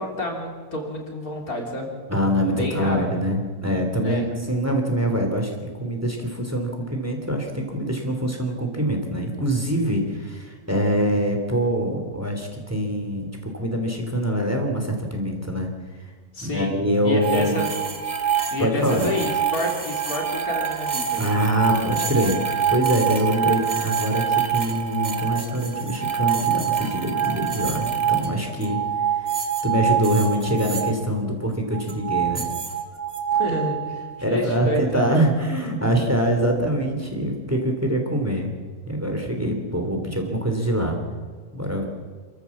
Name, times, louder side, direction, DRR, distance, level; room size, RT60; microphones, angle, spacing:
voice 1, 0.0-1.9 2.5-3.1 3.9-4.3 16.3-16.7 17.0-17.7 18.5-21.2 33.3-35.2, left 1 dB, 75° left, 1 dB, 3.8 m, -29 dB
voice 2, 2.1-15.7 16.4-17.6 18.6-19.1 21.2-22.4 22.7-28.8 29.1-29.4 29.6-32.5 34.2-38.5 38.9-41.0 41.5-41.9, equal, 10° right, 3 dB, 3.3 m, -24 dB
sound 1, 17.2-30.9 31.7-34.3, right 8 dB, 30° right, 1.4 m, -25 dB
27.5 x 14.0 x 7.4 m, 1.5 s
omnidirectional pair, 1.6 m